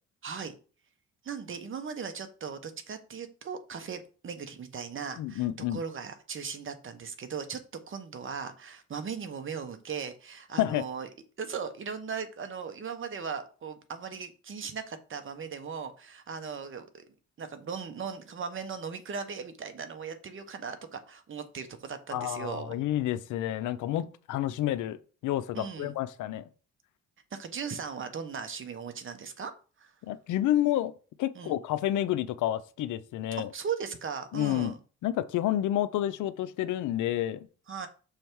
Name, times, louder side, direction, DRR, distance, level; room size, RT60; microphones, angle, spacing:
voice 1, 0.2-0.5 1.2-7.6 7.9-11.1 11.4-17.0 17.4-22.8 25.5-25.9 27.3-29.5 29.8-29.9 31.3-31.6 33.4-34.8 37.7-37.9, right 6 dB, 40° right, 1.0 m, -38 dB
voice 2, 5.2-5.8 10.6-10.8 22.1-25.0 25.2-26.5 30.1-30.9 31.2-33.5 34.3-34.7 35.0-37.5, left 13 dB, 80° left, 0.6 m, -29 dB
6.3 x 3.3 x 4.6 m
cardioid pair, 90°, 30 cm